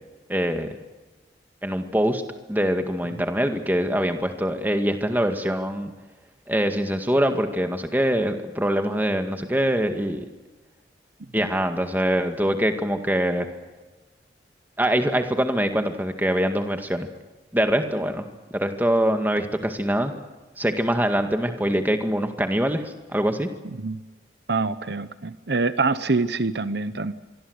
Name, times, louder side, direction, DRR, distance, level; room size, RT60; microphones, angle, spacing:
voice 1, 0.3-0.7 1.6-2.2 2.5-5.9 6.5-10.3 11.3-13.5 14.8-17.1 17.5-18.3 18.5-20.3 20.6-23.5, equal, 10° right, 6 dB, 2.0 m, -24 dB
voice 2, 24.5-27.1, right 3 dB, 65° right, 13 dB, 0.9 m, -25 dB
25.5 x 23.0 x 8.1 m, 1.2 s
head